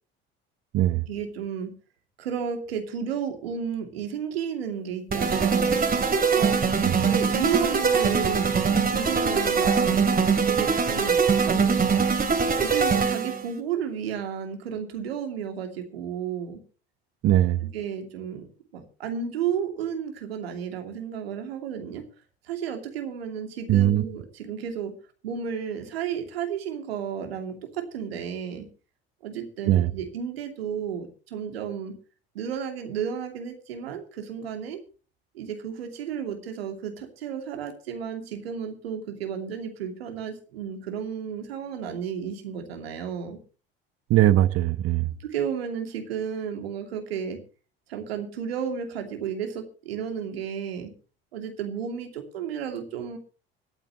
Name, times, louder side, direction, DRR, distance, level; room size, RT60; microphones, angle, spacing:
voice 1, 1.1-1.7 2.2-5.8 6.3-6.6 7.0-10.0 10.4-11.8 12.5-16.6 17.6-18.5 18.7-22.0 22.4-24.9 25.2-28.7 29.2-31.9 32.3-34.8 35.3-43.4 45.2-47.4 47.9-50.9 51.3-53.2, right 7 dB, 80° right, 2.7 m, -32 dB
sound 1, 5.1-13.4, right 5 dB, 30° right, 2.7 m, -22 dB
voice 2, 17.2-17.6 23.7-24.0 29.7-29.9 44.1-45.1, right 13 dB, 50° right, 1.0 m, -20 dB
24.0 x 9.0 x 3.1 m
hypercardioid pair, 65°, 30 cm